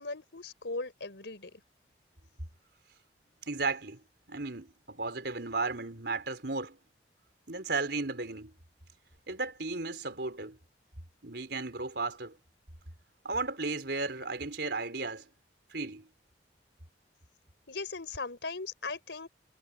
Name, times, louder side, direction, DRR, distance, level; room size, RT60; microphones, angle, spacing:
voice 1, 0.0-1.6 17.7-19.3, left 3 dB, 80° left, 3.7 m, -38 dB
voice 2, 3.5-4.0 4.3-6.8 7.5-8.5 9.3-10.6 11.2-12.3 13.2-15.3 15.7-16.1, right 3 dB, 70° right, 4.2 m, -34 dB
head